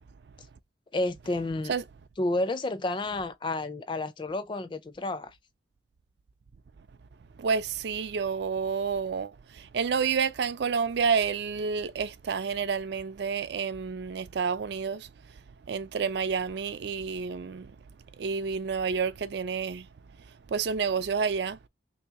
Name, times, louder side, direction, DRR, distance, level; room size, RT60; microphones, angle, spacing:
voice 1, 0.9-1.7 2.2-5.4, left 2 dB, 25° left, 0.3 m, -30 dB
voice 2, 7.4-15.1 15.7-17.7 18.2-19.9 20.5-21.6, right 6 dB, 60° right, 0.4 m, -29 dB
3.0 x 2.8 x 3.4 m
head